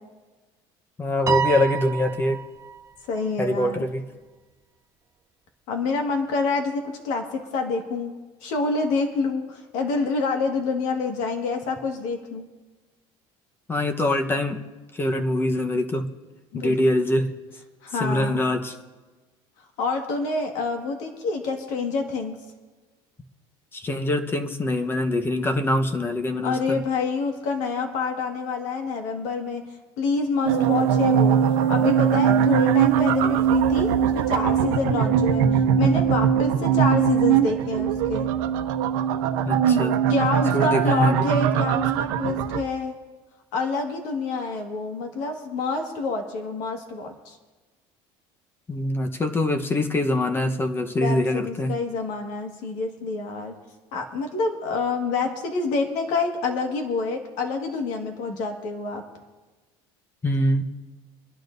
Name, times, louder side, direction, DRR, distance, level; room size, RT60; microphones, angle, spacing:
voice 1, 1.0-2.4 3.4-4.0 13.7-14.6 14.9-16.1 16.5-17.3 18.0-18.7 23.7-26.8 39.4-40.0 40.5-41.2 48.7-51.8 60.2-60.6, left 1 dB, 20° left, 6 dB, 1.0 m, -24 dB
Piano, 1.3-2.8, right 7 dB, 25° right, 0.7 m, -27 dB
voice 2, 3.1-3.8 5.7-12.5 16.5-16.8 17.8-18.4 19.8-22.4 26.4-29.6 30.0-31.4 31.7-38.3 40.1-42.9 43.5-47.4 51.0-53.5 53.9-59.0, left 4 dB, 75° left, 3 dB, 1.7 m, -27 dB
sound 1, 30.4-42.6, right 8 dB, 80° right, 0.9 m, -21 dB
25.5 x 11.5 x 2.6 m, 1.3 s
cardioid pair, 140°, 12 cm